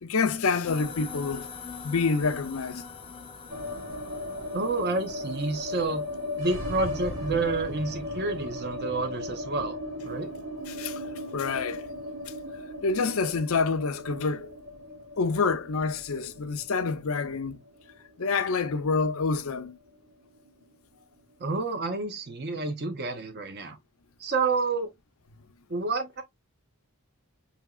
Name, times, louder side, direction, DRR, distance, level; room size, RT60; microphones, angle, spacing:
voice 1, 0.0-1.5 1.8-2.8 10.7-11.0 11.3-11.8 12.8-14.5 15.2-17.6 18.2-19.8, left 4 dB, 70° left, 0.6 m, -27 dB
sound 1, 0.7-8.3, left 6 dB, 25° left, 0.6 m, -44 dB
sound 2, 3.5-19.6 19.9-20.0 20.2-20.9, left 1 dB, 70° right, 1.5 m, -37 dB
voice 2, 4.5-6.0 6.4-10.3 21.4-23.8 24.2-24.9 25.7-26.2, right 3 dB, 50° right, 0.7 m, -29 dB
5.7 x 2.8 x 2.3 m
head